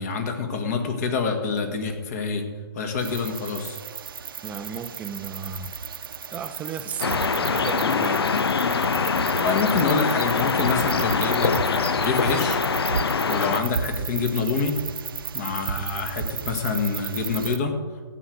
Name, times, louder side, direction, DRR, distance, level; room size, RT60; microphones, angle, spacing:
voice 1, 0.0-2.4 2.7-3.8 9.4-14.8 15.3-17.7, left 5 dB, 40° left, 1.9 m, -27 dB
sound 1, 3.0-17.6, right 6 dB, 60° right, 0.9 m, -33 dB
voice 2, 4.4-5.7 6.3-8.3, right 6 dB, 10° right, 0.5 m, -35 dB
sound 2, 7.0-13.6, left 5 dB, 75° left, 0.8 m, -24 dB
14.5 x 8.0 x 6.5 m
hypercardioid pair, 140°, 13 cm